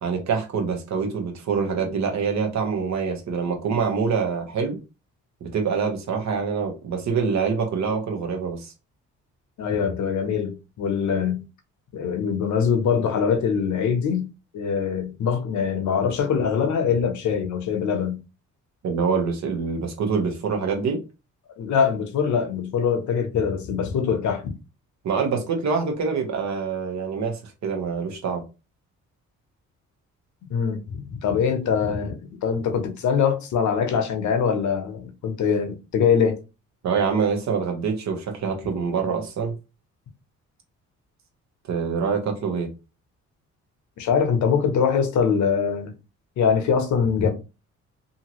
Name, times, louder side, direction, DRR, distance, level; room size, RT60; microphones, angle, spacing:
voice 1, 0.0-4.8 5.4-8.7 18.8-21.0 25.0-28.4 36.8-39.6 41.7-42.7, right 5 dB, 65° right, 1.0 m, -25 dB
voice 2, 9.6-11.5 11.9-18.2 21.6-24.5 30.5-36.4 44.0-45.9 46.4-47.3, left 6 dB, 70° left, 0.8 m, -23 dB
2.8 x 2.6 x 3.0 m
cardioid pair, 90°, 30 cm